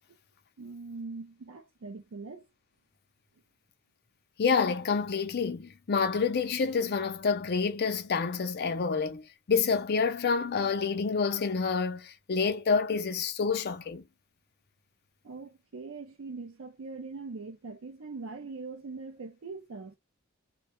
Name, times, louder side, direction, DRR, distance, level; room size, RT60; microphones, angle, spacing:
voice 1, 0.6-2.4 15.2-20.0, right 4 dB, 65° right, 0.5 m, -42 dB
voice 2, 4.4-14.0, left 5 dB, 50° left, 0.5 m, -28 dB
2.2 x 2.1 x 2.9 m
head